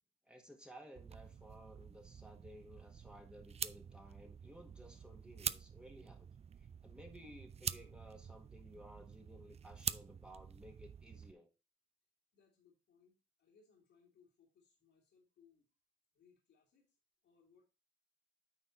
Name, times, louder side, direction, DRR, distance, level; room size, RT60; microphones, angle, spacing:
voice 1, 0.3-6.3 6.6-11.5, equal, 5° right, 3 dB, 1.6 m, -57 dB
sound 1, 1.0-11.3, right 7 dB, 30° right, 0.4 m, -46 dB
voice 2, 12.3-15.7 16.1-17.0 17.2-17.7, left 6 dB, 75° left, -3 dB, 2.4 m, -70 dB
9.0 x 4.2 x 3.9 m, 0.28 s
cardioid pair, 90°, 20 cm